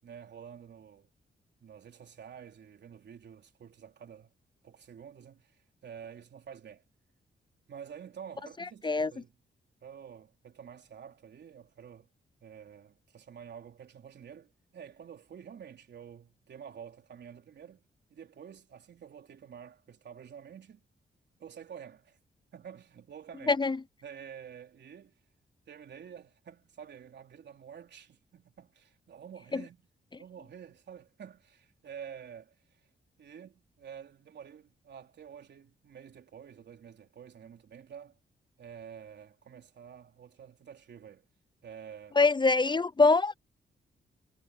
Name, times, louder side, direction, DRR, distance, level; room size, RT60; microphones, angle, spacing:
voice 1, 0.0-1.1 1.6-4.3 4.6-6.8 7.7-9.3 9.8-12.1 12.4-17.8 18.1-20.9 21.4-22.2 22.5-23.6 24.0-25.2 25.7-29.8 30.2-32.8 33.2-38.2 38.6-41.3 41.6-42.2, right 8 dB, 65° right, 3.8 m, -49 dB
voice 2, 23.5-23.8 29.5-29.6 42.2-43.4, left 3 dB, 25° left, 0.6 m, -24 dB
cardioid pair, 105°, 19 cm